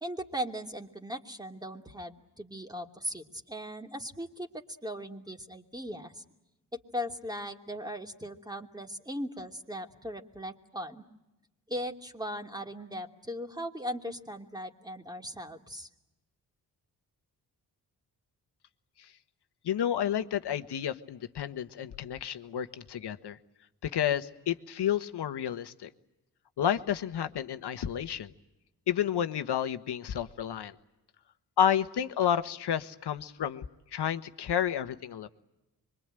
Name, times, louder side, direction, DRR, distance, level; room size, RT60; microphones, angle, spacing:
voice 1, 0.0-6.2 6.7-11.0 11.7-15.9, equal, 10° right, 3 dB, 2.8 m, -38 dB
voice 2, 19.6-23.4 23.8-25.9 26.6-28.3 28.9-30.7 31.6-33.6 33.9-35.3, left 9 dB, 75° left, 10 dB, 1.4 m, -30 dB
26.0 x 23.0 x 9.1 m, 0.98 s
cardioid pair, 60°, 41 cm